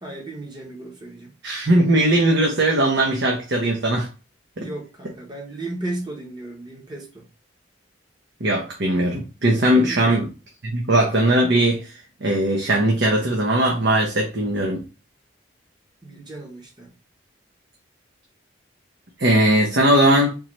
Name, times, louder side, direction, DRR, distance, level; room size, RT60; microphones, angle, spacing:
voice 1, 0.0-1.3 4.6-7.3 9.8-10.3 16.0-16.9, right 2 dB, 20° right, 0.9 m, -35 dB
voice 2, 1.4-4.1 4.6-4.7 8.4-10.3 10.6-11.9 12.2-14.8 19.2-20.3, right 1 dB, 65° right, 0.8 m, -19 dB
3.8 x 2.9 x 3.0 m
head